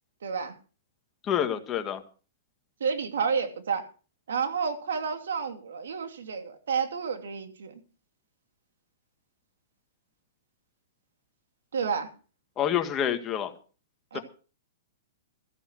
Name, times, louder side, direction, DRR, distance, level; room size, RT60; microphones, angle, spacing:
voice 1, 0.2-0.5 2.8-3.8 4.3-7.8 11.7-12.1 14.1-14.2, right 6 dB, 85° right, 2.7 m, -30 dB
voice 2, 1.3-2.0 12.6-13.5 14.1-14.2, left 9 dB, 20° left, 1.7 m, -27 dB
14.5 x 8.6 x 6.4 m
hypercardioid pair, 150°, 0 cm